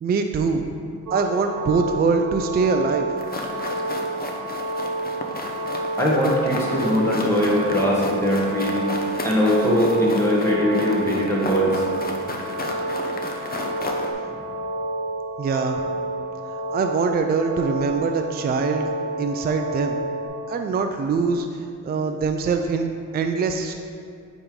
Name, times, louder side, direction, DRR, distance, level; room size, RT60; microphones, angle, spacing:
voice 1, 0.0-0.6 1.1-3.1 15.4-15.8 16.7-18.9 19.2-20.0 20.5-21.5 21.8-22.9 23.1-23.7, right 4 dB, 30° right, 5 dB, 0.4 m, -23 dB
sound 1, 1.1-20.3, right 2 dB, 70° right, 1.2 m, -30 dB
sound 2, 3.2-14.1, left 2 dB, 30° left, 0.7 m, -33 dB
voice 2, 6.0-8.8 9.2-11.8, equal, 10° left, -5 dB, 1.1 m, -21 dB
8.5 x 3.1 x 3.7 m, 2.3 s
cardioid pair, 75°, 31 cm